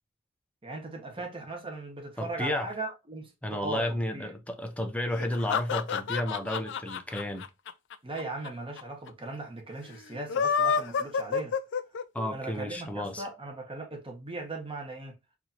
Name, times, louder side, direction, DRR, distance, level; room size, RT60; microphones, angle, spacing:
voice 1, 0.6-4.3 8.0-11.6 12.3-15.1, right 2 dB, 25° right, 1.1 m, -38 dB
voice 2, 2.2-2.7 3.4-7.5 12.1-13.2, left 1 dB, 5° left, 0.6 m, -32 dB
sound 1, 5.1-8.5 8.8-8.9 9.1-9.2 10.1-12.3, left 6 dB, 60° left, 0.4 m, -29 dB
4.7 x 2.7 x 2.7 m
head